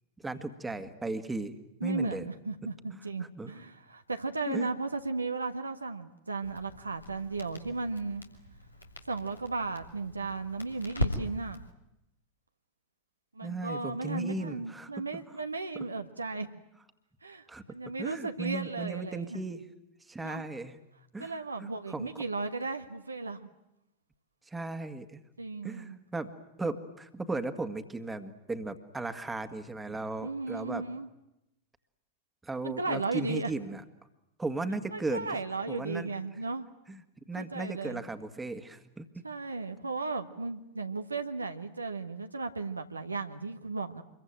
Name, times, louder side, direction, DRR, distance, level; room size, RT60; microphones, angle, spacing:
voice 1, 0.2-1.5 1.8-2.2 2.9-3.0 3.4-3.5 4.5-4.7 13.4-14.9 17.5-17.6 18.0-19.6 20.1-20.8 21.1-21.3 21.6-22.1 24.5-25.2 25.6-26.3 26.6-30.8 32.4-33.8 34.4-35.3 35.7-36.1 36.9-37.0 37.3-39.2, right 2 dB, 10° right, 8 dB, 1.9 m, -36 dB
voice 2, 1.8-8.2 9.1-11.6 13.3-16.6 17.2-19.4 20.2-20.4 21.2-23.5 25.4-26.0 30.2-31.1 32.6-33.5 34.9-36.7 37.4-38.0 39.2-44.0, right 3 dB, 80° right, 6 dB, 1.4 m, -35 dB
Crackle, 6.4-11.7, left 1 dB, 85° left, 2.9 m, -39 dB
26.5 x 22.5 x 9.2 m, 0.87 s
figure-of-eight pair, 90°, 0 cm